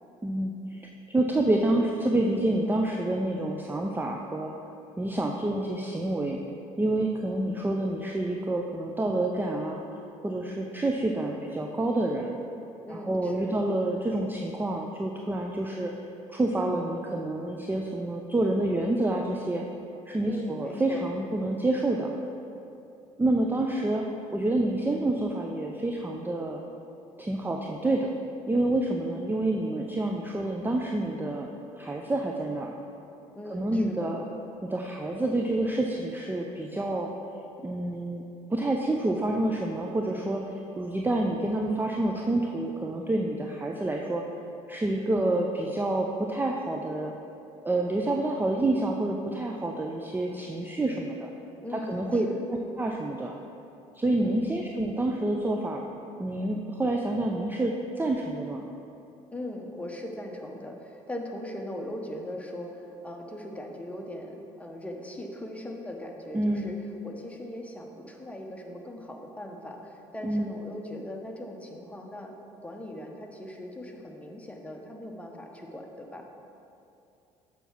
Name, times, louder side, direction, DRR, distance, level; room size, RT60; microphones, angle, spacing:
voice 1, 0.2-4.5 5.0-6.4 6.8-9.8 10.2-12.3 12.9-15.9 16.3-19.6 20.1-22.1 23.2-24.0 24.3-26.6 27.2-28.1 28.5-31.5 31.8-32.7 33.5-34.3 34.6-37.1 37.6-38.2 38.5-44.2 44.7-47.1 47.6-51.3 51.7-52.3 52.8-53.3 54.0-55.8 56.2-58.6 66.3-66.7 70.2-70.5, right 2 dB, 10° right, 1 dB, 0.5 m, -28 dB
voice 2, 12.9-13.6 20.2-21.0 33.3-34.1 51.6-52.4 54.2-54.5 59.3-66.8 67.0-72.4 72.6-76.3, left 1 dB, 5° left, 1 dB, 1.0 m, -39 dB
6.9 x 4.6 x 5.7 m, 2.7 s
figure-of-eight pair, 55°, 17 cm